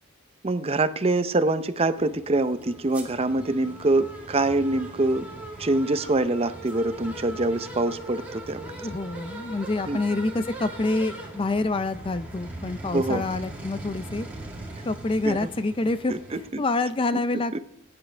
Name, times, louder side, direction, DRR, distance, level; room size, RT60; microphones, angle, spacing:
voice 1, 0.4-5.3 5.6-8.7 9.9-10.0 12.9-13.2 15.2-15.4 16.1-16.2 16.5-16.6 17.5-17.6, right 2 dB, 25° right, 11 dB, 0.6 m, -24 dB
sound 1, 1.9-16.5, right 1 dB, 5° right, 2.4 m, -40 dB
voice 2, 8.7-14.3 14.8-17.6, left 2 dB, 25° left, 12 dB, 0.4 m, -27 dB
18.5 x 9.7 x 3.3 m, 0.73 s
head